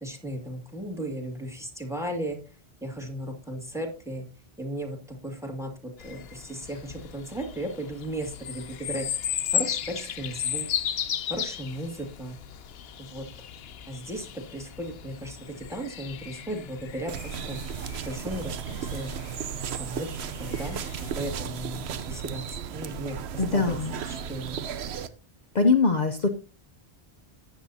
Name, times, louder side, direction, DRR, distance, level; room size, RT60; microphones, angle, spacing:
voice 1, 0.0-2.4 2.8-4.2 4.6-10.7 11.3-12.4 13.0-13.2 13.9-17.6 18.0-19.1 19.8-20.8 21.2-23.8 24.0-24.6, right 1 dB, 5° right, 4 dB, 2.1 m, -36 dB
sound 1, 6.0-21.1, left 9 dB, 75° left, 0.9 m, -36 dB
sound 2, 17.1-25.1, right 8 dB, 85° right, 1.0 m, -35 dB
voice 2, 23.4-24.0 25.5-26.3, left 4 dB, 45° left, 6 dB, 0.9 m, -22 dB
14.0 x 9.2 x 2.7 m, 0.34 s
omnidirectional pair, 1.1 m